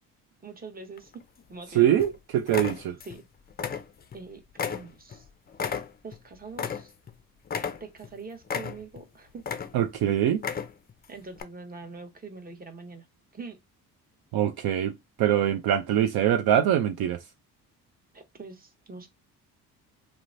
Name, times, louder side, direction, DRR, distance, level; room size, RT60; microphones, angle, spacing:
voice 1, 0.4-1.2 1.5-1.9 3.0-3.2 4.1-5.3 6.0-6.9 7.8-9.4 11.1-13.1 13.3-13.6 18.1-19.1, right 4 dB, 20° right, 0.8 m, -43 dB
sound 1, 1.0-1.6 2.0-2.2 2.5-3.2 3.5-4.2 4.6-7.1 7.5-8.1 8.5-9.0 9.4-10.0 10.3-10.9 11.4-11.5, left 6 dB, 25° left, 0.4 m, -33 dB
voice 2, 1.7-3.0 9.7-10.4 14.3-17.2, right 10 dB, 60° right, 0.5 m, -24 dB
2.9 x 2.1 x 2.5 m
hypercardioid pair, 55°, 42 cm